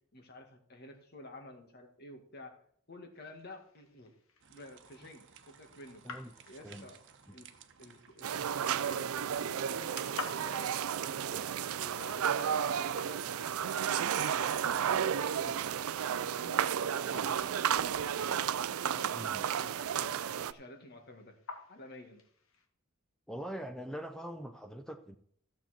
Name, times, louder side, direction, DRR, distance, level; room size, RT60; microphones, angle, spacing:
voice 1, 0.1-2.6 2.9-4.1 4.5-6.0 6.5-7.0 7.3-7.5 7.8-11.5 11.8-14.1 14.5-16.6 16.9-18.6 18.8-20.2 20.5-21.4 21.7-22.2, left 1 dB, 50° left, 4 dB, 2.0 m, -51 dB
sound 1, 3.1-22.7, left 3 dB, 65° left, 1.5 m, -53 dB
sound 2, 4.4-9.4, right 7 dB, 60° right, 1.0 m, -59 dB
sound 3, 8.2-20.5, right 8 dB, 85° right, 0.4 m, -32 dB
voice 2, 19.1-19.5 23.3-25.2, equal, 5° left, 5 dB, 0.6 m, -43 dB
15.0 x 7.3 x 4.4 m, 0.63 s
head